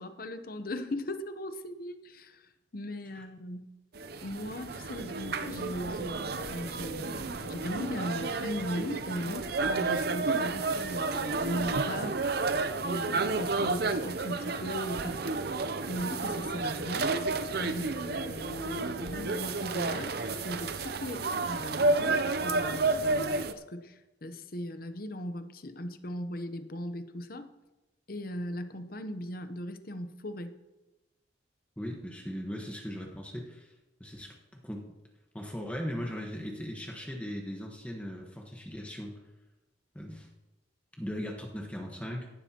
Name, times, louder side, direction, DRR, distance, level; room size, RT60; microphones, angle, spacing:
voice 1, 0.0-3.7 4.2-12.2 12.8-15.4 15.9-17.1 17.6-20.1 20.4-27.5 28.1-30.5, left 1 dB, 50° left, 10 dB, 0.8 m, -38 dB
sound 1, 4.0-23.5, right 3 dB, 55° right, 0.6 m, -31 dB
voice 2, 31.8-33.7 34.0-34.9 35.3-39.2 39.9-40.3 41.0-42.3, equal, 5° left, 0 dB, 1.3 m, -38 dB
17.0 x 11.5 x 2.9 m, 1.1 s
head